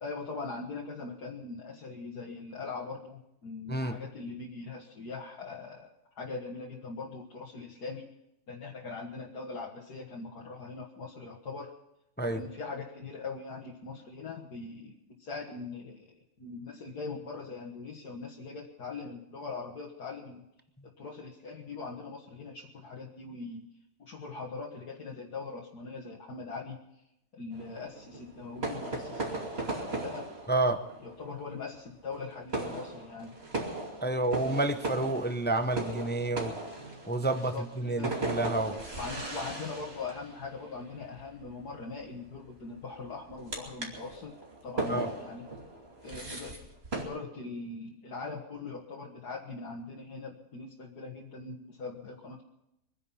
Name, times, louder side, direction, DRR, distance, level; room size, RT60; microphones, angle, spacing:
voice 1, 0.0-8.1 8.5-11.7 12.3-20.5 20.8-23.6 24.0-26.8 27.3-30.3 31.0-33.3 37.2-38.2 39.0-44.3 44.6-45.5 46.0-46.6 46.9-52.4, left 4 dB, 75° left, -2 dB, 2.3 m, -41 dB
sound 1, 27.5-47.0, right 2 dB, 40° right, 2.9 m, -38 dB
voice 2, 30.5-30.8 34.0-36.5 37.1-38.8 44.9-45.1, right 2 dB, 10° left, 9 dB, 0.7 m, -29 dB
24.0 x 10.0 x 5.7 m, 0.84 s
omnidirectional pair, 1.7 m